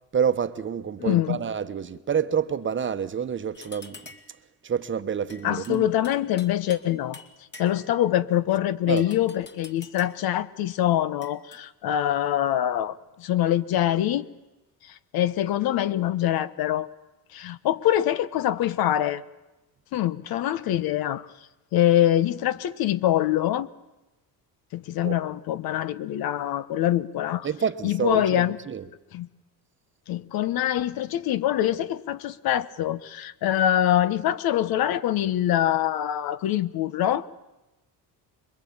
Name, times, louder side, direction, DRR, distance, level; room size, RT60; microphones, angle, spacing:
voice 1, 0.1-4.0 4.6-5.9 8.9-9.1 25.0-25.2 27.4-28.8, right 7 dB, 30° right, 1.1 m, -28 dB
voice 2, 1.0-1.4 5.4-7.2 7.6-14.3 15.1-16.9 17.3-19.2 19.9-21.3 21.7-23.7 24.7-27.5 27.8-28.6 29.1-29.3 30.1-37.3, left 12 dB, 65° left, 1.2 m, -24 dB
sound 1, 3.5-4.4 5.3-6.9 7.1-8.0 9.0-10.3 11.2-11.6, left 3 dB, 25° left, 2.4 m, -47 dB
26.5 x 22.5 x 8.8 m
cardioid pair, 125°, 39 cm